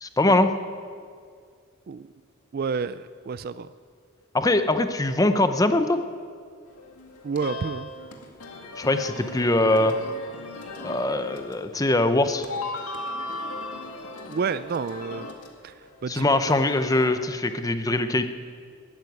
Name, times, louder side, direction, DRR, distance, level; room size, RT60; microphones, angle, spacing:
voice 1, 0.0-0.5 4.3-6.0 8.8-10.0 10.8-12.5 16.1-18.2, left 2 dB, 15° left, 9 dB, 0.6 m, -22 dB
voice 2, 2.5-3.7 7.2-7.9 14.3-15.3 15.6-15.7 16.0-16.6, right 5 dB, 40° right, 15 dB, 0.3 m, -30 dB
sound 1, 6.7-17.1, left 2 dB, 90° left, 1.9 m, -38 dB
14.5 x 9.6 x 9.4 m, 2.1 s
head